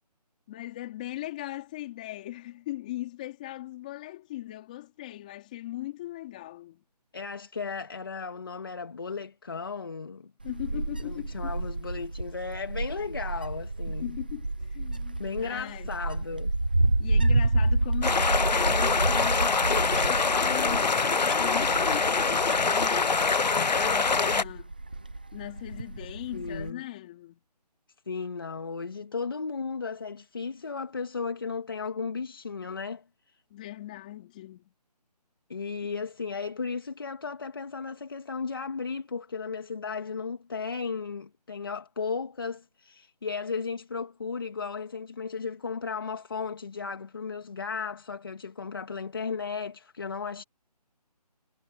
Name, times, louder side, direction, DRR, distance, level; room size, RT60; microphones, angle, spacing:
voice 1, 0.5-6.8 10.4-11.5 13.9-15.9 16.9-24.7 25.3-27.4 33.5-34.7, left 15 dB, 10° left, 4.1 m, -39 dB
voice 2, 7.1-10.3 11.0-14.1 15.2-16.5 26.3-26.8 28.1-33.0 35.5-50.4, left 5 dB, 35° left, 1.9 m, -35 dB
Wind, 10.4-26.7, right 2 dB, 15° right, 0.8 m, -30 dB
sound 1, 18.0-24.4, left 4 dB, 85° left, 1.1 m, -24 dB
hypercardioid pair, 180°, 21 cm